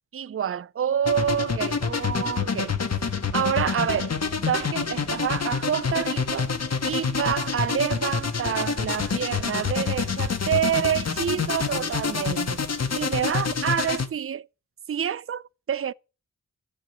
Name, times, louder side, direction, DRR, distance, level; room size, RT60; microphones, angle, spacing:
voice 1, 0.1-2.8 3.3-4.1 4.5-6.5 6.8-12.6 13.0-14.5 14.9-15.9, right 9 dB, 45° right, 0.5 m, -27 dB
sound 1, 1.1-14.1, left 5 dB, 55° left, 1.6 m, -27 dB
13.0 x 6.1 x 8.7 m
wide cardioid pair, 70°, 31 cm